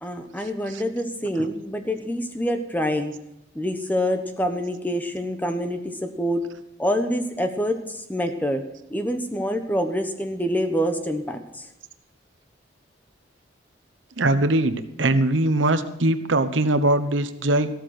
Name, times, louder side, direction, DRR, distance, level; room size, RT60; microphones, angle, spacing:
voice 1, 0.0-3.1 3.5-6.4 6.8-8.6 8.9-11.6, equal, 10° left, 6 dB, 1.0 m, -26 dB
voice 2, 14.2-17.7, right 2 dB, 85° right, 10 dB, 1.0 m, -21 dB
14.5 x 13.0 x 4.3 m, 0.86 s
head